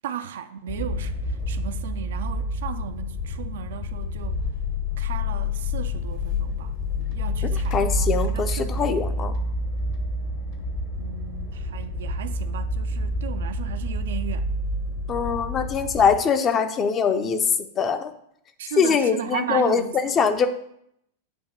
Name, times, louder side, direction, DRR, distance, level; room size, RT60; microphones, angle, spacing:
voice 1, 0.0-4.5 5.0-9.2 11.0-14.5 18.6-20.3, right 9 dB, 60° right, 0.4 m, -36 dB
sound 1, 0.7-16.2, left 1 dB, 45° left, 1.1 m, -28 dB
voice 2, 7.7-9.3 15.1-17.5 17.8-18.1 18.8-20.5, left 6 dB, 25° left, 0.6 m, -22 dB
7.9 x 2.9 x 6.0 m
figure-of-eight pair, 90°, 0 cm